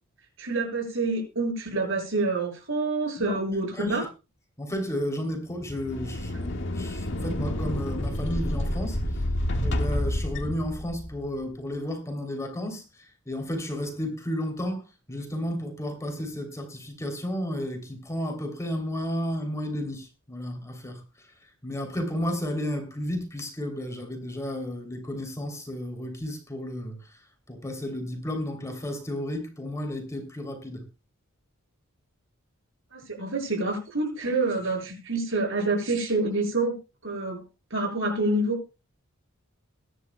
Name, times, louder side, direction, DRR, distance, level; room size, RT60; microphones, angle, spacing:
voice 1, 0.4-4.0 32.9-36.8 37.0-37.4 37.7-38.6, right 2 dB, 60° right, 6.7 m, -27 dB
voice 2, 3.7-4.0 4.6-9.2 9.6-30.8, equal, 15° left, 3.1 m, -33 dB
sound 1, 5.6-11.3, left 1 dB, 55° left, 1.7 m, -29 dB
22.5 x 11.0 x 2.3 m
head